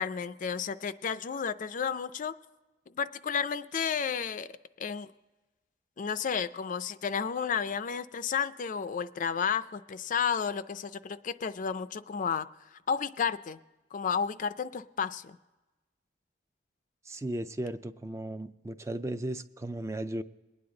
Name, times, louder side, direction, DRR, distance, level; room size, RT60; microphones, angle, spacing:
voice 1, 0.0-2.3 3.0-4.5 4.8-5.1 6.0-12.5 12.7-13.6 13.9-15.4, left 6 dB, 45° left, 13 dB, 0.4 m, -32 dB
voice 2, 17.1-20.2, right 1 dB, 15° right, 11 dB, 0.4 m, -36 dB
22.0 x 9.6 x 3.8 m, 1.1 s
head